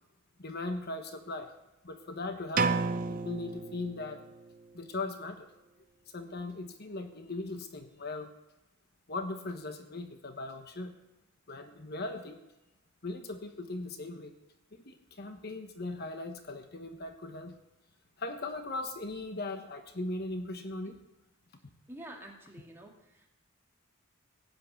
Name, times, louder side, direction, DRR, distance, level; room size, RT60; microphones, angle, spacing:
voice 1, 0.4-1.5 1.8-2.8 3.1-4.2 4.7-5.5 6.1-8.3 9.1-11.0 11.5-12.4 13.0-14.3 14.7-17.6 18.2-21.0, left 2 dB, 50° left, 6 dB, 1.2 m, -39 dB
sound 1, 2.6-4.4, right 4 dB, 40° right, 0.6 m, -31 dB
voice 2, 21.9-23.3, right 1 dB, 10° right, 0 dB, 2.2 m, -48 dB
16.0 x 8.7 x 8.5 m, 0.93 s
head